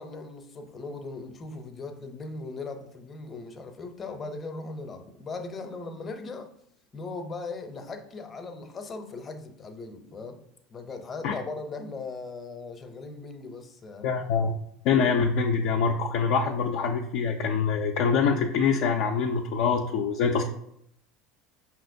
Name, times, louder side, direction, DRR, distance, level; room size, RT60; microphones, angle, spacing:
voice 1, 0.0-6.5 6.9-10.4 10.7-14.1, left 3 dB, 30° left, 6 dB, 0.7 m, -38 dB
voice 2, 14.0-14.5 14.8-20.4, left 5 dB, 60° left, 2 dB, 0.4 m, -24 dB
5.4 x 2.9 x 2.6 m, 0.72 s
hypercardioid pair, 75°, 0 cm